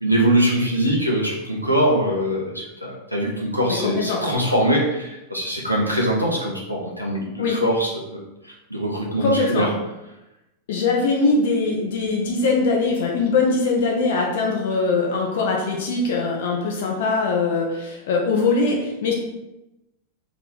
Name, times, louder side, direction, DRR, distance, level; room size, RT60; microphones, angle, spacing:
voice 1, 0.0-9.7, right 1 dB, 90° left, -3 dB, 0.8 m, -22 dB
voice 2, 3.7-4.2 7.4-7.6 9.2-9.7 10.7-19.1, left 3 dB, 55° left, -1 dB, 0.7 m, -22 dB
3.3 x 3.0 x 4.0 m, 0.95 s
figure-of-eight pair, 90°, 0 cm